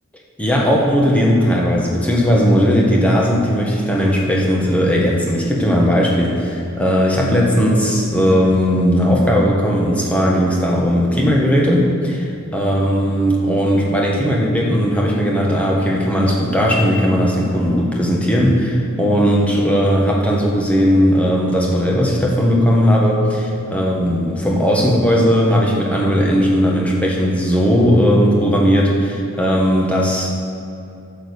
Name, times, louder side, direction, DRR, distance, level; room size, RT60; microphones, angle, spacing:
voice 1, 0.4-12.3 12.5-30.3, equal, 5° left, -3 dB, 1.4 m, -17 dB
8.9 x 7.4 x 6.6 m, 2.8 s
head